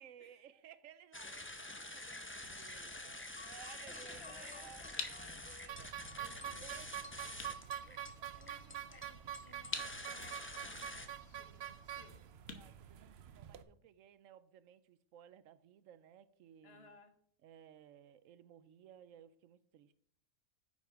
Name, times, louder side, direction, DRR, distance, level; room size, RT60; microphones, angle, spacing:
voice 1, 0.0-8.1 12.4-16.9 17.4-19.9, right 10 dB, 80° right, 1.0 m, -59 dB
sound 1, 1.1-11.1, left 2 dB, 10° left, 0.6 m, -48 dB
voice 2, 3.8-5.3 6.2-7.2 8.3-12.2 16.6-17.2, left 4 dB, 55° left, 1.2 m, -60 dB
sound 2, 5.7-13.6, right 10 dB, 60° right, 0.8 m, -46 dB
sound 3, 7.3-13.7, left 6 dB, 75° left, 1.4 m, -50 dB
9.5 x 5.6 x 4.7 m
omnidirectional pair, 1.4 m